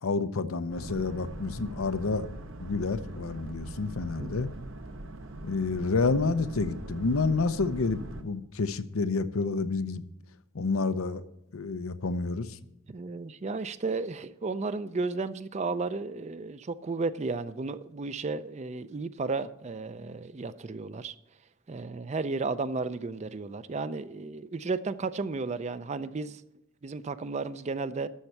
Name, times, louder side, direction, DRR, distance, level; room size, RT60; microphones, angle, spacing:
voice 1, 0.0-2.3 2.6-4.5 5.4-10.0 10.5-11.2 11.5-12.6, left 4 dB, 90° left, 0.7 m, -29 dB
Boat Water vehicle, 0.7-8.2, right 1 dB, 65° right, 1.0 m, -42 dB
voice 2, 12.9-21.1 21.7-26.4 26.8-28.1, right 3 dB, 35° right, 0.4 m, -33 dB
13.0 x 4.4 x 8.1 m
head